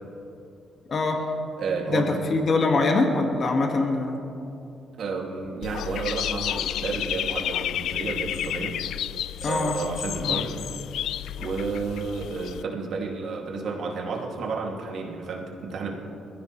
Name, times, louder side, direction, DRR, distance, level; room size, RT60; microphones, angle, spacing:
voice 1, 0.9-1.2 1.9-4.2 9.4-9.8 10.2-10.5, left 3 dB, 45° left, 2 dB, 1.9 m, -23 dB
voice 2, 1.6-2.2 5.0-8.8 9.5-10.5 11.4-16.0, right 4 dB, 65° right, -1 dB, 2.6 m, -31 dB
Dog / Bird, 5.6-12.6, left 11 dB, 75° left, 0.3 m, -31 dB
21.5 x 15.0 x 3.3 m, 2.7 s
cardioid pair, 90°, 0 cm